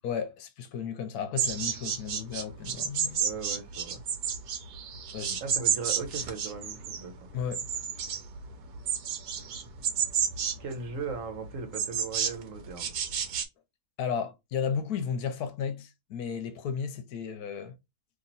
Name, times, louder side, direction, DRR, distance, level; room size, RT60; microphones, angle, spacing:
voice 1, 0.0-3.2 5.1-5.4 7.3-7.7 14.0-17.7, left 7 dB, 80° left, 1.2 m, -34 dB
sound 1, 1.4-13.4, right 7 dB, 85° right, 1.3 m, -31 dB
voice 2, 3.2-4.0 5.4-7.3 10.6-13.0, right 5 dB, 60° right, 1.1 m, -38 dB
2.9 x 2.8 x 3.9 m
omnidirectional pair, 1.6 m